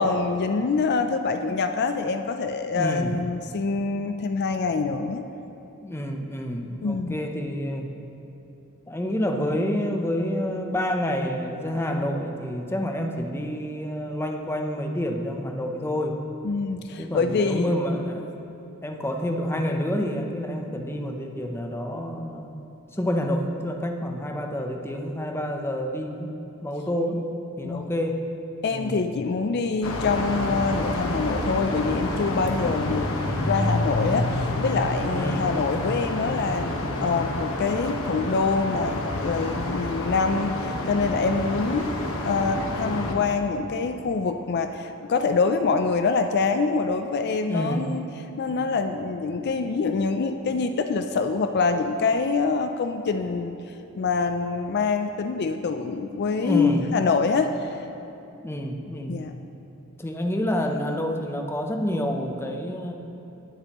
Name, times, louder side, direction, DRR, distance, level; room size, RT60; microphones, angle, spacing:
voice 1, 0.0-5.2 6.8-7.2 16.4-17.7 27.6-27.9 28.6-33.1 33.5-48.0 48.4-53.5 54.0-57.7 59.1-59.3, left 4 dB, 50° left, 7 dB, 0.4 m, -25 dB
voice 2, 2.7-3.2 5.8-7.9 8.9-16.2 17.0-18.2 18.8-22.7 23.0-26.3 26.6-27.3 27.6-28.2 28.7-29.1 35.1-35.5 47.5-47.9 56.4-56.9 58.4-59.2 60.0-62.9, equal, 10° left, 3 dB, 0.7 m, -28 dB
sound 1, 29.8-43.1, left 1 dB, 70° left, 1.1 m, -28 dB
19.5 x 7.7 x 3.0 m, 2.9 s
head